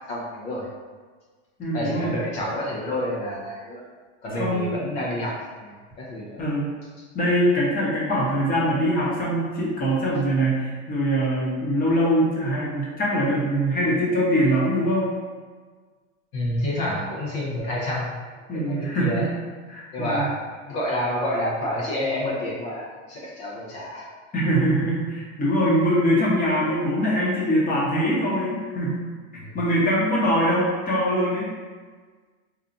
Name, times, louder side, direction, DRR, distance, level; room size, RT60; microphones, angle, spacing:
voice 1, 0.1-0.7 1.7-3.8 4.2-6.4 16.3-18.2 18.6-19.3 19.9-20.3 20.7-24.1 29.4-29.6, left 1 dB, 65° left, -4 dB, 1.0 m, -29 dB
voice 2, 1.6-2.1 4.4-4.7 6.4-6.7 7.1-15.1 18.5-19.2 19.7-20.3 24.3-29.0 29.5-31.5, equal, 20° left, -5 dB, 0.9 m, -23 dB
4.3 x 2.3 x 2.6 m, 1.5 s
supercardioid pair, 125°, 39 cm